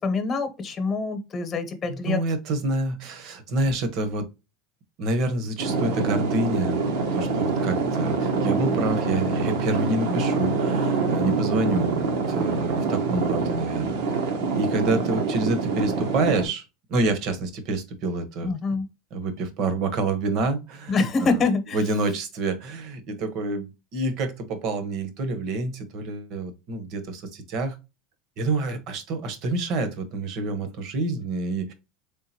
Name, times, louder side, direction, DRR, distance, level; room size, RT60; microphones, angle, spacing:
voice 1, 0.0-2.2 10.1-10.2 18.4-18.9 20.9-21.8, left 3 dB, 30° left, 1.0 m, -25 dB
voice 2, 1.9-4.3 5.0-6.8 7.1-14.0 14.2-16.6 16.9-18.8 19.1-21.4 21.7-27.7 28.4-31.7, right 2 dB, 55° right, 1.1 m, -28 dB
sound 1, 5.6-16.5, right 4 dB, 80° right, 1.1 m, -25 dB
3.7 x 3.6 x 2.8 m
supercardioid pair, 115°, 0 cm